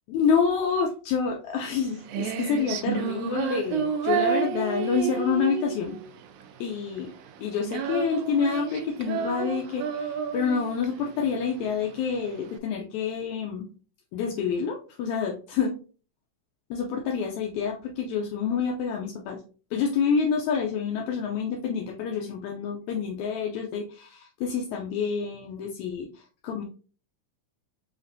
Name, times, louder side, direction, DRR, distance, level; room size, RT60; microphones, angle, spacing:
voice 1, 0.1-6.0 6.6-7.1 7.4-13.7 14.1-15.8 16.7-19.4 19.7-26.6, left 6 dB, 80° left, 1 dB, 1.9 m, -28 dB
Female singing, 1.6-12.6, right 8 dB, 80° right, 1.5 m, -31 dB
7.2 x 2.5 x 2.6 m, 0.38 s
omnidirectional pair, 3.4 m